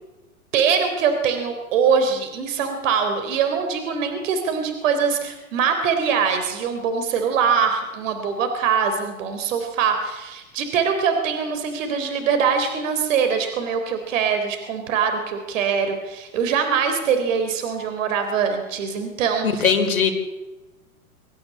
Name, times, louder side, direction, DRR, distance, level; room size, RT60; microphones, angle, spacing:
voice 1, 0.5-19.6, right 6 dB, 60° right, 6 dB, 3.7 m, -23 dB
voice 2, 19.4-20.1, left 6 dB, 75° left, 5 dB, 4.8 m, -19 dB
25.5 x 14.5 x 8.7 m, 1.1 s
hypercardioid pair, 105°, 43 cm